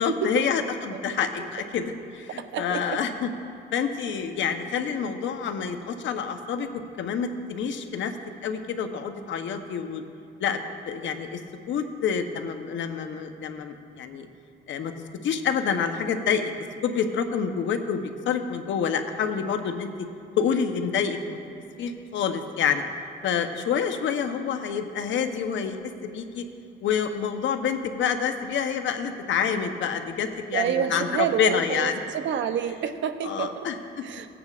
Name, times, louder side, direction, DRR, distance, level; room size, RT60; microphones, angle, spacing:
voice 1, 0.0-3.3 3.7-8.1 8.4-10.0 10.4-11.4 11.7-14.3 14.7-14.9 15.2-16.5 16.8-19.9 20.4-21.4 21.8-22.8 23.2-25.8 26.0-26.4 26.8-32.0 33.2-34.0, left 7 dB, 70° left, 6 dB, 0.9 m, -27 dB
voice 2, 2.3-3.0 30.5-33.7 34.0-34.3, right 9 dB, 70° right, 10 dB, 0.6 m, -28 dB
18.0 x 8.7 x 2.4 m, 2.7 s
cardioid pair, 90°, 20 cm